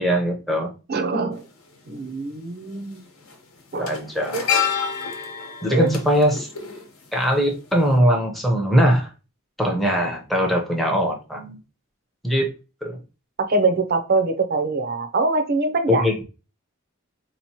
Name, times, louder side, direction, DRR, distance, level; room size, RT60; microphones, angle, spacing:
voice 1, 0.0-0.7 3.8-4.5 5.6-6.5 7.1-9.1 9.6-11.6 12.2-12.5 12.8-13.0 15.9-16.2, equal, ahead, 0.6 m, -21 dB
voice 2, 0.9-1.4 1.9-3.0 3.7-3.9 4.3-4.4 5.7-5.9 13.4-16.1, right 3 dB, 45° right, 0.5 m, -23 dB
sound 1, 1.3-1.4 2.7-2.9 3.2-7.5 7.8-7.9, left 7 dB, 75° left, 0.9 m, -28 dB
4.0 x 2.9 x 2.8 m
head